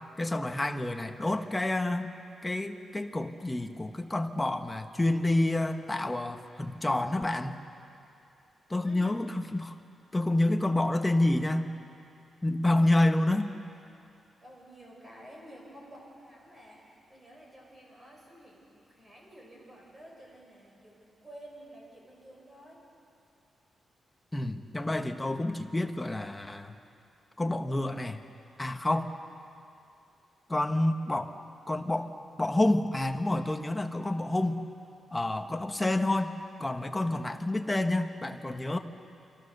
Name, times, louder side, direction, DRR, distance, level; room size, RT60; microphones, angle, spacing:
voice 1, 0.2-2.1 2.4-7.6 8.7-9.7 10.1-11.7 12.4-13.6 24.3-26.8 27.4-28.2 28.6-29.2 30.5-31.3 31.7-32.1 32.4-34.6 35.1-38.8, left 1 dB, 15° left, 6 dB, 1.2 m, -28 dB
voice 2, 8.8-9.2 14.4-16.8 17.1-22.8, right 1 dB, 20° right, -2 dB, 7.0 m, -51 dB
28.0 x 25.5 x 6.8 m, 2.6 s
wide cardioid pair, 150°, 0 cm